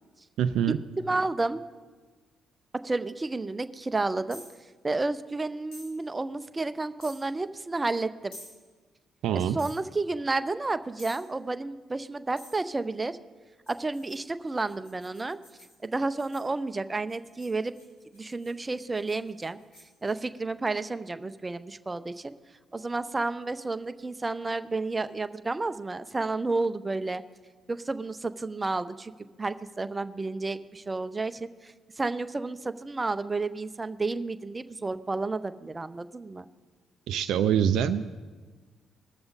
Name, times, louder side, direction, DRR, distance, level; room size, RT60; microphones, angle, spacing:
voice 1, 0.4-0.8 9.2-9.6 37.1-38.0, right 9 dB, 70° right, 9 dB, 0.4 m, -24 dB
voice 2, 1.1-1.6 2.8-4.4 4.8-8.3 9.3-13.2 13.7-15.4 15.8-17.7 18.1-19.6 20.0-22.3 22.7-27.2 27.7-29.1 29.4-36.4, right 3 dB, 25° right, 12 dB, 0.7 m, -31 dB
sound 1, 4.3-4.6 5.7-5.9 7.0-7.2 8.3-8.6 9.6-9.8 11.0-11.3 12.4-12.6 13.7-16.5 17.1-20.1, left 1 dB, 75° left, 4.0 m, -50 dB
20.0 x 6.8 x 4.1 m, 1.3 s
hypercardioid pair, 50°, 0 cm